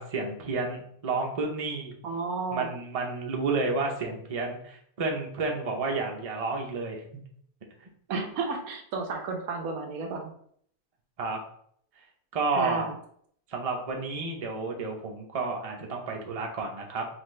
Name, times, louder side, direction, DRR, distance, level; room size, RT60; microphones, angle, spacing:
voice 1, 0.0-1.9 2.5-7.0 11.2-11.4 12.3-12.9 13.5-17.1, right 3 dB, 35° right, 1 dB, 0.7 m, -31 dB
voice 2, 2.0-2.7 8.1-10.3 12.6-12.9, right 4 dB, 90° right, 3 dB, 1.3 m, -32 dB
5.7 x 2.6 x 3.2 m, 0.64 s
omnidirectional pair, 1.5 m